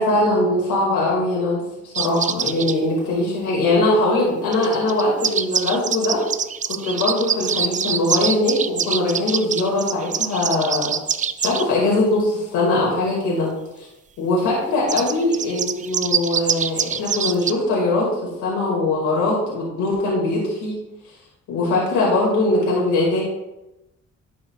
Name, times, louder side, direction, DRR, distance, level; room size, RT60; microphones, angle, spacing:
voice 1, 0.0-6.2 6.8-10.9 11.4-13.5 13.8-13.9 14.2-18.1 18.4-20.7 21.5-23.2, left 2 dB, 80° left, -4 dB, 2.3 m, -21 dB
sound 1, 1.9-2.8 4.5-11.6 14.9-17.5, right 7 dB, 25° right, 0.3 m, -24 dB
10.5 x 5.4 x 2.4 m, 0.93 s
cardioid pair, 90°, 30 cm